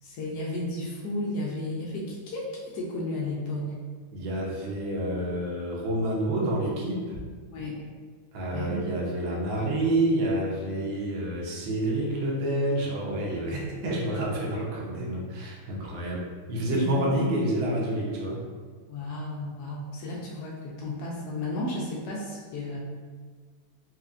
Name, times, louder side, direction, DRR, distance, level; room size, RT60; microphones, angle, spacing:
voice 1, 0.0-3.8 7.5-7.8 8.5-8.8 14.5-14.6 16.7-17.1 18.9-22.8, left 1 dB, 90° left, -3 dB, 0.8 m, -33 dB
voice 2, 4.1-7.2 8.3-18.4, right 1 dB, 70° right, -4 dB, 1.4 m, -28 dB
4.5 x 2.8 x 2.4 m, 1.5 s
omnidirectional pair, 2.4 m